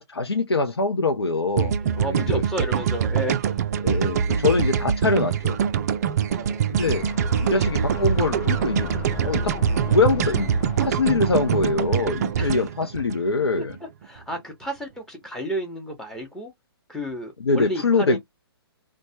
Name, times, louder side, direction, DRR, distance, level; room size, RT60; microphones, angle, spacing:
voice 1, 0.0-2.4 3.8-5.6 6.7-7.1 7.4-8.9 9.2-9.5 9.8-10.5 10.8-13.8 17.4-18.2, left 3 dB, 75° left, 0.5 m, -23 dB
sound 1, 1.6-13.8, right 8 dB, 40° right, 0.4 m, -24 dB
voice 2, 1.8-3.6 6.3-6.7 7.5-7.7 12.4-12.6 13.6-13.7 14.0-16.5 16.9-18.2, equal, 5° left, 0.9 m, -32 dB
sound 2, 6.7-12.7, left 10 dB, 20° left, 0.4 m, -37 dB
3.1 x 2.2 x 2.7 m
figure-of-eight pair, 125°, 13 cm